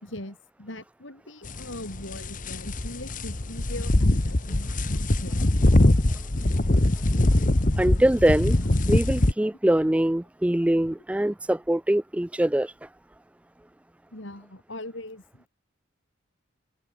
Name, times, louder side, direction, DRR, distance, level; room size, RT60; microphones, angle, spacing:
voice 1, 0.0-5.5 6.0-6.1 14.1-15.5, left 1 dB, 70° left, 5.3 m, -40 dB
sound 1, 1.4-9.3, left 1 dB, 40° left, 1.2 m, -22 dB
voice 2, 7.8-8.6 8.9-12.7, right 1 dB, 5° right, 0.3 m, -23 dB
head